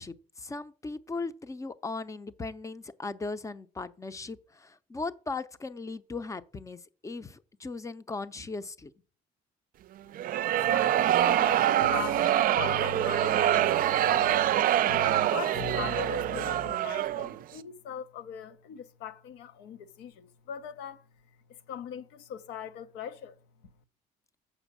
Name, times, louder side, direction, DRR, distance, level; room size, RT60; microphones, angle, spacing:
voice 1, 0.0-8.9, left 3 dB, 20° left, 0.6 m, -38 dB
sound 1, 10.1-17.4, right 12 dB, 55° right, 0.5 m, -25 dB
voice 2, 10.5-14.6 15.3-21.0 21.5-23.4, left 9 dB, 90° left, 1.0 m, -41 dB
sound 2, 11.3-16.8, left 6 dB, 50° left, 0.8 m, -42 dB
7.2 x 5.0 x 6.8 m
cardioid pair, 110°, 17 cm